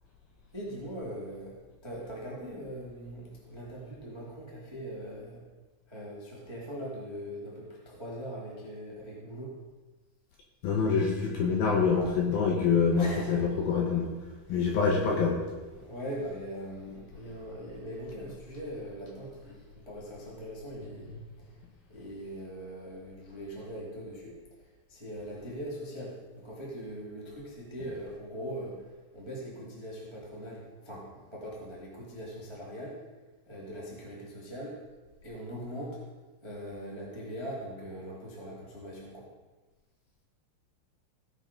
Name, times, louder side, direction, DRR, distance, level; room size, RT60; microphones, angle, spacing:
voice 1, 0.5-1.5 1.8-5.4 5.9-9.6 12.9-13.4 14.5-14.8 15.7-21.1 21.9-24.4 24.9-28.9 29.1-33.0 33.5-34.8 35.2-36.0 36.4-39.2, equal, 25° right, -5 dB, 0.6 m, -41 dB
voice 2, 10.6-14.1 14.5-15.4, left 5 dB, 70° left, 0 dB, 2.3 m, -26 dB
16.0 x 5.9 x 5.2 m, 1.2 s
omnidirectional pair, 5.4 m